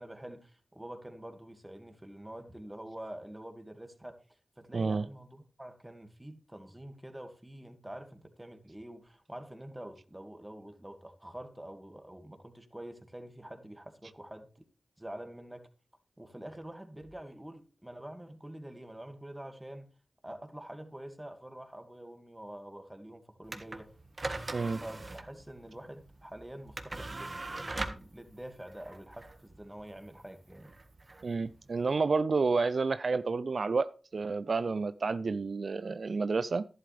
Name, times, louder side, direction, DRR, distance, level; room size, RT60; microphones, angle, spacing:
voice 1, 0.0-4.2 4.6-14.5 15.0-15.6 16.2-19.9 20.2-23.9 24.8-30.7, right 1 dB, 15° right, 2.1 m, -46 dB
voice 2, 4.7-5.0 24.5-24.8 31.2-36.7, right 4 dB, 65° right, 0.4 m, -30 dB
sound 1, 23.4-31.9, right 2 dB, 40° right, 1.5 m, -42 dB
11.5 x 11.0 x 3.4 m
cardioid pair, 45°, 0 cm